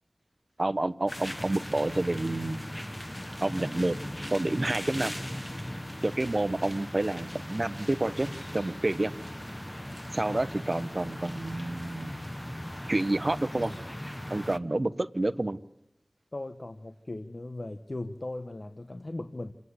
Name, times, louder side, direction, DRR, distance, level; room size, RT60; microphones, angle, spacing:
voice 1, 0.6-2.6 3.4-4.0 4.3-5.1 6.0-9.1 10.1-12.1 12.9-13.7 14.3-15.6, right 2 dB, 45° right, 11 dB, 1.0 m, -29 dB
sound 1, 1.1-14.6, left 1 dB, 15° left, 1.2 m, -38 dB
voice 2, 16.3-19.5, left 2 dB, 50° left, 8 dB, 1.2 m, -38 dB
28.0 x 9.5 x 9.6 m, 0.86 s
wide cardioid pair, 45°, 0 cm